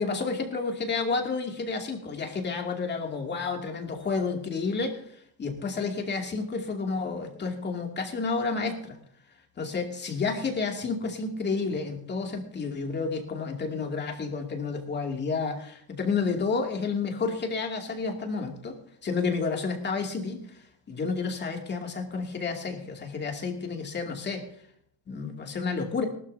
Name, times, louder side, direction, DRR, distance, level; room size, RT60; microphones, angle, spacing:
voice 1, 0.0-5.0 5.4-9.0 9.6-18.8 19.0-20.6 20.9-24.5 25.1-26.0, left 4 dB, 30° left, 2 dB, 2.6 m, -30 dB
18.5 x 13.0 x 2.8 m, 0.67 s
cardioid pair, 140°, 36 cm